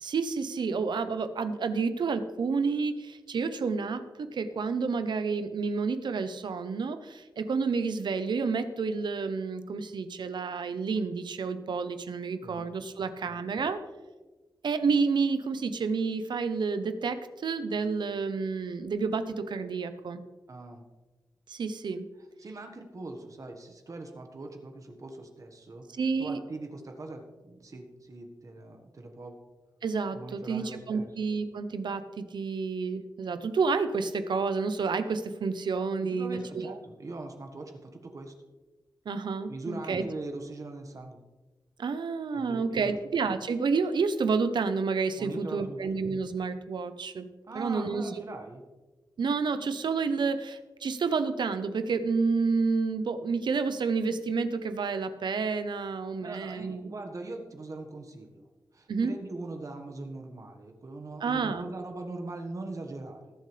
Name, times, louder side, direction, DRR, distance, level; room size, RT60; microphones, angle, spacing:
voice 1, 0.0-13.8 14.6-20.2 21.5-22.1 26.0-26.4 29.8-36.8 39.1-40.0 41.8-47.3 47.5-48.0 49.2-56.9 58.9-59.1 61.2-61.7, right 4 dB, 80° right, 10 dB, 0.8 m, -30 dB
voice 2, 20.5-20.8 22.4-25.9 26.2-29.4 30.1-31.1 36.0-38.3 39.5-41.2 42.3-43.0 45.2-45.8 47.5-48.6 56.2-58.5 58.7-63.3, right 2 dB, 45° right, 3 dB, 1.5 m, -41 dB
19.0 x 7.6 x 3.4 m, 1.2 s
wide cardioid pair, 125°, 8 cm